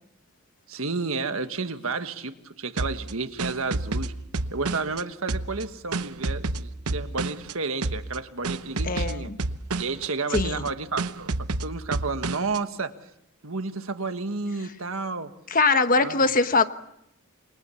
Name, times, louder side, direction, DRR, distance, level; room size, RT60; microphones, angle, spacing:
voice 1, 0.7-4.1 4.5-9.3 9.8-11.3 11.6-12.9 13.4-15.3 16.0-16.2, right 4 dB, 65° right, 1.7 m, -31 dB
sound 1, 2.8-5.0 5.3-7.5 7.8-8.2 8.4-10.1 10.3-10.7 11.0-12.6, right 2 dB, 85° right, 0.9 m, -29 dB
voice 2, 8.8-9.4 10.3-10.7 15.5-16.6, left 3 dB, 40° left, 1.2 m, -22 dB
28.5 x 23.0 x 7.2 m
head